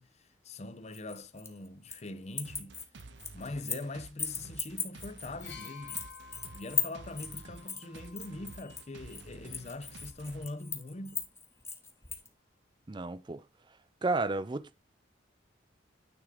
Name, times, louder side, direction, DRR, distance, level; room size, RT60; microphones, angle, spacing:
voice 1, 0.0-2.7 3.3-6.1 6.5-11.3, left 2 dB, 35° left, 0.6 m, -42 dB
sound 1, 0.9-2.1 2.3-3.9 4.2-12.3, left 5 dB, 15° left, 1.0 m, -38 dB
sound 2, 2.4-10.5, right 3 dB, 60° right, 0.7 m, -51 dB
sound 3, 5.4-9.2 10.2-10.4, left 7 dB, 60° left, 1.9 m, -53 dB
voice 2, 12.9-13.4 14.0-14.8, right 3 dB, 25° right, 0.4 m, -32 dB
9.5 x 3.7 x 4.8 m
head